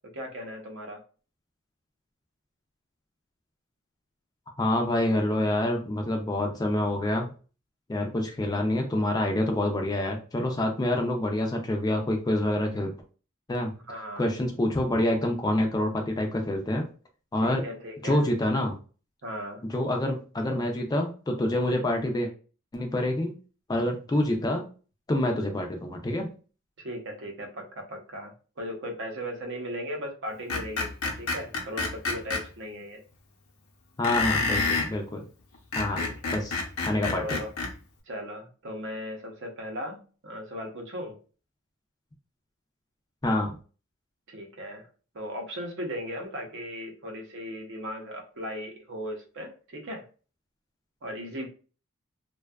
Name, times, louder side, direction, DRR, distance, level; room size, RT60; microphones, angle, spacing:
voice 1, 0.1-1.0 13.9-14.3 17.4-18.2 19.2-19.6 26.8-33.0 35.9-36.4 37.1-37.5 38.1-41.2 44.3-44.9 45.1-50.0 51.0-51.5, equal, 55° right, 2 dB, 0.6 m, -37 dB
voice 2, 4.6-7.3 7.9-12.9 13.5-13.7 14.2-16.9 17.3-17.6 18.0-18.7 19.7-22.3 22.7-23.3 23.7-24.6 25.1-26.3 34.0-35.3 35.8-36.0 36.3-37.4 43.2-43.5, left 1 dB, 20° left, 3 dB, 0.3 m, -27 dB
Screech, 30.5-32.4 34.0-34.9 35.5-37.7, left 3 dB, 90° left, 0.7 m, -28 dB
2.6 x 2.2 x 2.2 m, 0.37 s
head